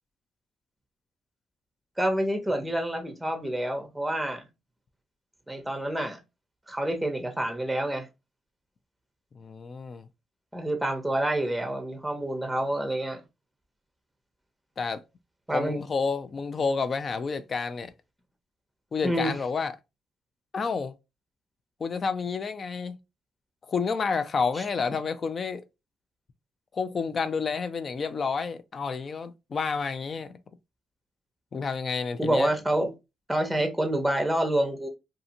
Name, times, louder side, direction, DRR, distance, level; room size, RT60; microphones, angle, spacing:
voice 1, 2.0-4.5 5.5-6.2 6.7-8.1 10.5-13.2 15.5-15.8 19.0-19.3 24.6-24.7 32.2-32.9 33.3-34.9, right 1 dB, 5° right, 0.6 m, -27 dB
voice 2, 9.3-10.1 14.8-15.0 15.5-17.9 18.9-19.7 20.5-20.9 21.8-23.0 23.7-25.6 26.7-30.3 31.5-32.5, left 5 dB, 45° left, 0.3 m, -29 dB
2.7 x 2.5 x 2.6 m
cardioid pair, 90°, 0 cm